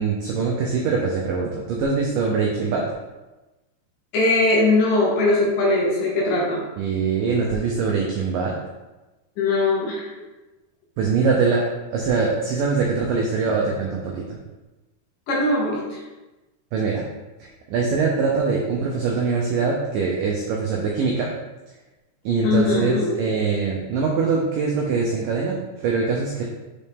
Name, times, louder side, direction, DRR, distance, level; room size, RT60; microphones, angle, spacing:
voice 1, 0.0-2.8 6.8-8.6 11.0-11.6 11.9-14.4 16.7-17.0 17.7-21.3 22.3-25.6 25.8-26.4, right 4 dB, 85° right, -2 dB, 1.9 m, -23 dB
voice 2, 4.1-6.6 9.4-10.1 15.3-16.0 22.4-23.2, left 2 dB, 70° left, -4 dB, 2.3 m, -20 dB
6.3 x 4.3 x 3.5 m, 1.1 s
omnidirectional pair, 4.7 m